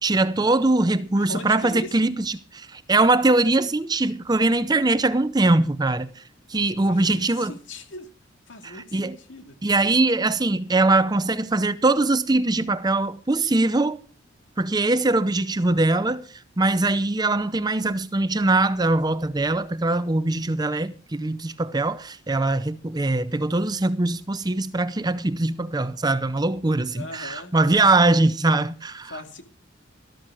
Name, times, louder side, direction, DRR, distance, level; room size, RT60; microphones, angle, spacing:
voice 1, 0.0-6.2 6.5-7.5 8.6-9.2 9.6-14.0 14.6-16.2 16.6-29.1, right 2 dB, 20° right, 0.6 m, -22 dB
voice 2, 1.2-2.1 6.9-8.1 8.5-9.6 26.9-28.3 29.1-29.4, left 2 dB, 70° left, 2.3 m, -40 dB
13.5 x 13.0 x 4.8 m
head